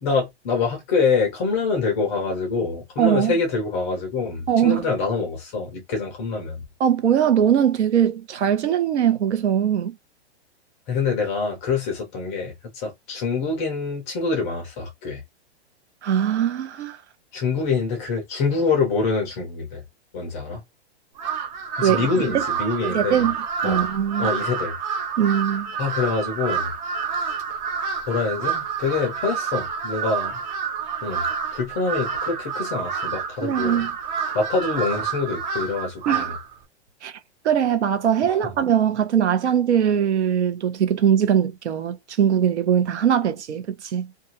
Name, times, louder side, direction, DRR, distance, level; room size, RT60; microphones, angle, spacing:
voice 1, 0.0-6.6 10.9-15.2 17.3-19.8 20.1-20.6 21.8-23.3 23.6-23.8 24.2-24.8 25.8-26.7 28.1-30.4 31.0-31.3 31.5-33.8 34.3-36.4 38.2-38.4, left 4 dB, 15° left, 0.4 m, -25 dB
voice 2, 3.0-3.3 4.5-4.9 6.8-10.0 16.0-17.0 21.8-22.1 22.3-22.4 22.8-23.4 23.6-24.3 25.2-25.7 33.4-33.9 36.1-36.3 37.0-37.1 37.4-44.1, right 9 dB, 80° right, 0.8 m, -21 dB
Crow, 21.2-36.5, right 6 dB, 40° right, 0.6 m, -28 dB
2.4 x 2.3 x 2.8 m
hypercardioid pair, 165°, 33 cm